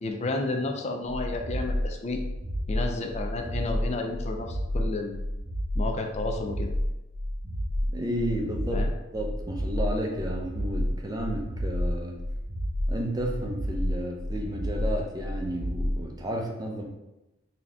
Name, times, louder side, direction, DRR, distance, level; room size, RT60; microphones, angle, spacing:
voice 1, 0.0-2.2 2.7-5.3 5.7-6.7 8.7-8.9, left 2 dB, 35° left, 3 dB, 0.4 m, -31 dB
sound 1, 1.1-16.0, equal, 80° right, 0.9 m, -30 dB
voice 2, 7.9-12.2 12.9-16.8, equal, 20° right, 0 dB, 0.6 m, -32 dB
4.1 x 2.8 x 3.5 m, 0.98 s
head